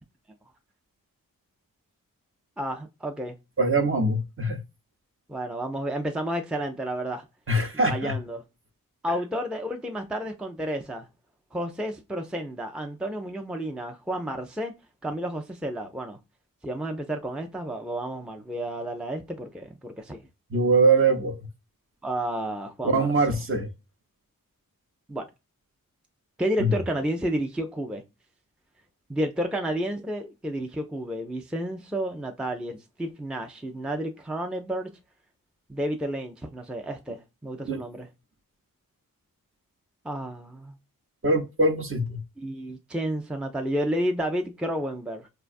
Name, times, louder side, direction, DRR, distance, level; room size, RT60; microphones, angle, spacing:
voice 1, 2.6-3.4 5.3-7.2 7.9-8.4 9.0-11.1 11.5-14.7 15.0-16.2 16.6-20.2 22.0-23.1 25.1-25.3 26.4-28.0 29.1-34.9 35.7-38.1 40.0-40.8 42.4-45.3, right 1 dB, 5° right, 0.5 m, -31 dB
voice 2, 3.6-4.6 7.5-8.2 20.5-21.5 22.8-23.7 26.6-26.7 37.6-37.8 41.2-42.2, right 2 dB, 35° right, 0.8 m, -23 dB
4.6 x 2.2 x 2.5 m
cardioid pair, 60°, 35 cm